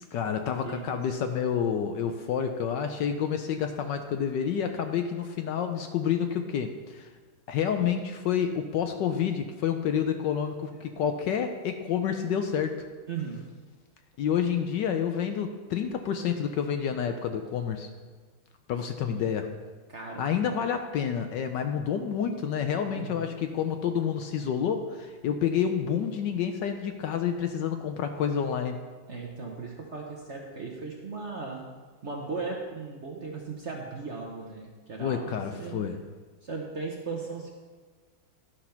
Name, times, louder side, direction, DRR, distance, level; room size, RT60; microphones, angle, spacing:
voice 1, 0.1-7.1 7.5-12.8 14.2-17.9 18.7-19.5 20.2-28.8 35.0-36.0, left 8 dB, 75° left, 6 dB, 1.1 m, -29 dB
voice 2, 0.6-1.0 10.7-10.9 13.1-13.4 19.0-19.4 19.9-20.4 22.9-23.2 29.1-31.6 32.0-35.8 36.4-37.5, right 4 dB, 45° right, 0 dB, 1.0 m, -37 dB
12.0 x 5.1 x 5.7 m, 1.4 s
omnidirectional pair, 2.2 m